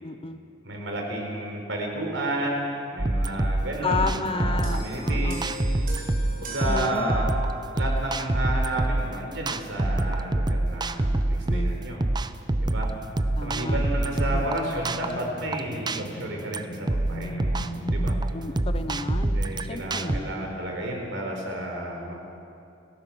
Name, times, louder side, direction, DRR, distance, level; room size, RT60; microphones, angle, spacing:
voice 1, 0.0-0.4 3.8-5.5 6.6-7.1 11.3-11.8 13.3-13.8 14.3-14.7 18.3-19.4 19.7-20.4, left 3 dB, 30° left, 9 dB, 0.9 m, -32 dB
voice 2, 0.6-5.6 6.4-7.3 7.7-12.0 12.6-12.9 13.4-17.6 17.9-18.1 19.3-22.1, right 1 dB, 70° right, 1 dB, 4.6 m, -31 dB
sound 1, 3.0-20.2, right 1 dB, 20° right, 0.6 m, -26 dB
sound 2, 4.6-8.2 9.1-9.3, right 4 dB, 45° right, 4.0 m, -40 dB
sound 3, 12.6-20.6, left 1 dB, 80° left, 1.6 m, -40 dB
29.5 x 15.0 x 6.3 m, 2.7 s
head